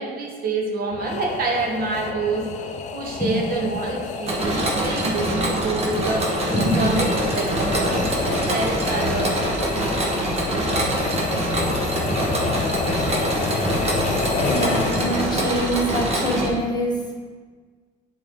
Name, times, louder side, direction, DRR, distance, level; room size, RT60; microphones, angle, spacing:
voice 1, 0.0-2.5 2.9-6.3 6.6-7.0 7.3-9.7, right 2 dB, 60° right, 0 dB, 1.2 m, -27 dB
sound 1, 0.9-15.5, left 5 dB, 45° left, 0.5 m, -29 dB
Mechanisms, 4.3-16.5, right 1 dB, 40° right, 1.1 m, -24 dB
voice 2, 6.5-6.9 7.6-7.9 14.4-17.1, equal, 25° left, -2 dB, 1.4 m, -25 dB
7.4 x 4.6 x 3.7 m, 1.5 s
cardioid pair, 110°, 17 cm